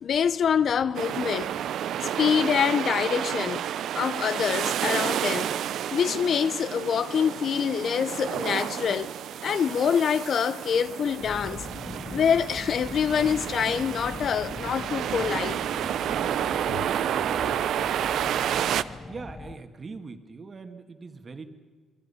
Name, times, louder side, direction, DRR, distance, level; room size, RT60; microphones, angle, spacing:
voice 1, 0.0-1.6 2.2-3.6 3.9-5.5 5.9-9.1 9.4-11.7 12.1-15.6 16.7-16.8, left 7 dB, 60° left, 0.7 m, -25 dB
sound 1, 0.9-18.8, right 10 dB, 75° right, 0.7 m, -30 dB
sound 2, 11.2-19.6, left 3 dB, 30° left, 0.9 m, -41 dB
voice 2, 19.1-21.5, right 4 dB, 35° right, 1.9 m, -41 dB
28.5 x 22.0 x 5.7 m
cardioid pair, 90°, 0 cm